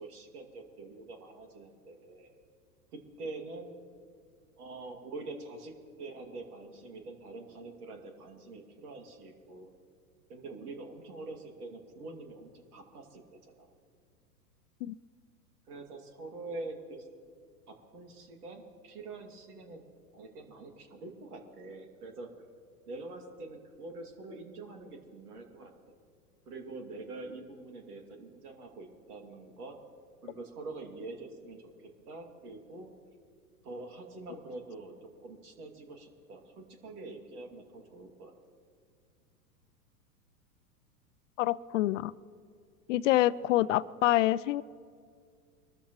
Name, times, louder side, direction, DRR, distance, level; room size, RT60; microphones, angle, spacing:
voice 1, 0.0-2.3 3.2-3.7 4.6-9.7 10.3-13.7 15.7-17.1 17.7-19.8 20.1-22.3 22.9-25.7 26.5-29.7 30.2-31.7 32.1-32.9 33.6-38.3 43.4-43.7, right 3 dB, 70° right, 3 dB, 2.7 m, -45 dB
voice 2, 41.4-42.1 42.9-44.6, left 15 dB, 55° left, 18 dB, 0.5 m, -26 dB
24.0 x 13.5 x 3.1 m, 2.2 s
hypercardioid pair, 105°, 46 cm